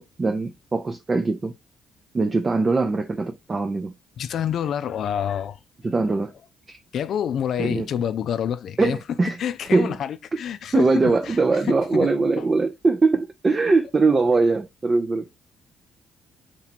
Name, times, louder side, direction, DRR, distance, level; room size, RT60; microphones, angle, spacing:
voice 1, 0.0-1.5 2.1-4.0 5.8-6.3 6.7-6.8 7.6-7.9 8.8-9.4 9.6-10.0 10.7-15.3, right 3 dB, 30° right, 0.4 m, -22 dB
voice 2, 4.2-5.6 6.9-9.0 9.4-11.3 11.9-12.1 12.4-12.5, left 9 dB, 65° left, 0.4 m, -27 dB
3.0 x 2.7 x 4.2 m
cardioid pair, 90°, 0 cm